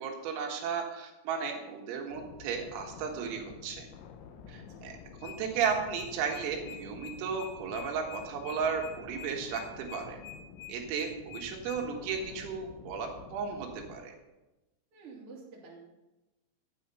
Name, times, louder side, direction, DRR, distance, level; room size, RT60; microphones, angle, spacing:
voice 1, 0.0-3.9 4.5-4.9 5.2-10.2 10.7-14.1, right 6 dB, 85° right, 2 dB, 4.3 m, -34 dB
sound 1, 2.1-14.0, left 6 dB, 85° left, 3.8 m, -50 dB
sound 2, 5.2-11.8, left 11 dB, 70° left, 2.2 m, -46 dB
voice 2, 14.9-15.8, right 4 dB, 35° right, -3 dB, 2.8 m, -48 dB
12.0 x 9.2 x 5.5 m, 1.0 s
omnidirectional pair, 5.9 m